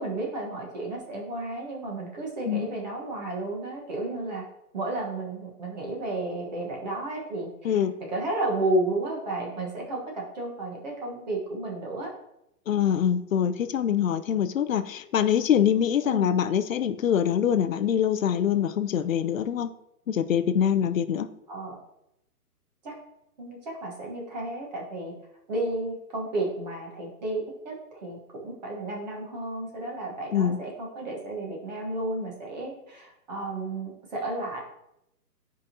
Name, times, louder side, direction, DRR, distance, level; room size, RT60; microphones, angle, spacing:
voice 1, 0.0-4.4 4.7-12.1 16.0-16.3 21.5-21.8 22.8-23.0 23.4-25.1 25.5-34.6, right 2 dB, 25° right, -1 dB, 1.3 m, -32 dB
voice 2, 12.7-19.7 20.1-21.3 30.3-30.6, left 9 dB, 60° left, 11 dB, 0.5 m, -24 dB
9.7 x 5.1 x 2.8 m, 0.83 s
hypercardioid pair, 170°, 48 cm